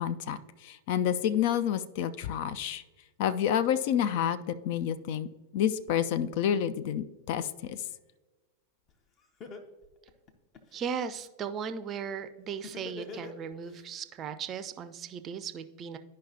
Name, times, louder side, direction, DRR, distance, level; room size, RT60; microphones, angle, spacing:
voice 1, 0.0-2.8 3.2-5.3 5.5-7.8, left 9 dB, 50° left, 13 dB, 0.3 m, -29 dB
Laughter, 8.9-9.0 9.4-10.9 12.6-13.8, left 4 dB, 30° left, 0.8 m, -43 dB
voice 2, 10.7-16.0, right 7 dB, 30° right, 10 dB, 0.5 m, -37 dB
11.0 x 5.2 x 2.7 m, 1.2 s
figure-of-eight pair, 90°, 0 cm